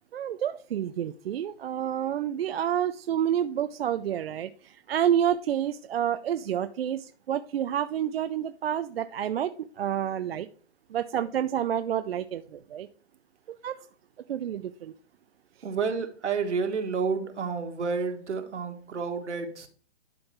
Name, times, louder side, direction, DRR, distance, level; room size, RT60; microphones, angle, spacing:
voice 1, 0.1-10.5 10.9-12.9 13.5-13.7 14.3-14.9, right 10 dB, 55° right, 10 dB, 0.5 m, -29 dB
voice 2, 15.6-19.7, right 5 dB, 75° right, 5 dB, 1.7 m, -30 dB
11.5 x 3.8 x 4.5 m, 0.43 s
hypercardioid pair, 140°, 35 cm